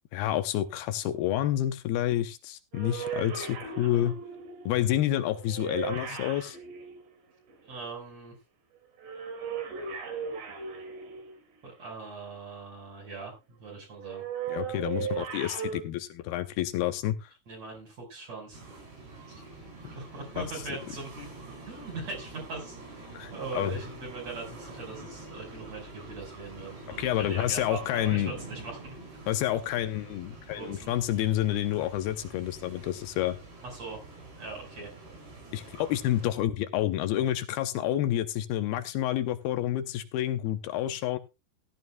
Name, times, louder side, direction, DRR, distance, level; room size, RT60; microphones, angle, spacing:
voice 1, 0.1-4.1 4.7-6.6 14.5-17.3 20.4-20.8 23.1-23.7 27.0-28.3 29.3-33.4 35.5-41.2, left 12 dB, 75° left, 9 dB, 2.5 m, -29 dB
sound 1, 2.7-7.8 9.0-11.6 14.0-15.8, right 6 dB, 90° right, 4.8 m, -37 dB
voice 2, 3.7-4.1 7.7-8.3 11.6-14.2 17.5-18.6 19.3-19.4 19.9-21.3 21.7-22.8 23.3-29.0 30.5-30.9 33.6-34.0 34.4-34.9, right 3 dB, 40° right, 0 dB, 6.1 m, -41 dB
sound 2, 18.5-36.4, right 3 dB, 70° right, 7.1 m, -46 dB
15.5 x 12.5 x 2.3 m, 0.27 s
omnidirectional pair, 4.9 m